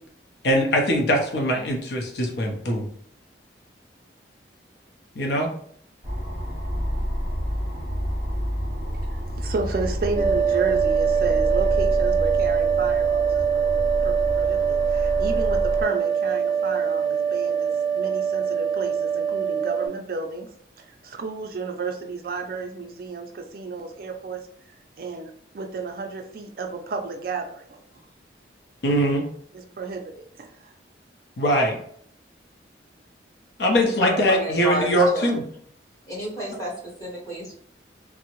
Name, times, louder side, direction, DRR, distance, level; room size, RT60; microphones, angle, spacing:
voice 1, 0.4-2.9 5.2-5.5 28.8-29.2 31.4-31.8 33.6-35.4, equal, 65° left, 0 dB, 0.6 m, -22 dB
sound 1, 6.0-15.8, equal, 5° right, 0.9 m, -28 dB
voice 2, 8.8-13.8 14.0-20.5 20.8-24.4 25.0-27.8 29.5-30.7, right 4 dB, 50° right, 4 dB, 0.4 m, -32 dB
sound 2, 10.1-19.9, right 7 dB, 40° left, 1.2 m, -23 dB
voice 3, 33.8-35.3 36.1-37.5, right 1 dB, 20° left, -8 dB, 1.5 m, -30 dB
3.5 x 2.0 x 2.9 m, 0.65 s
head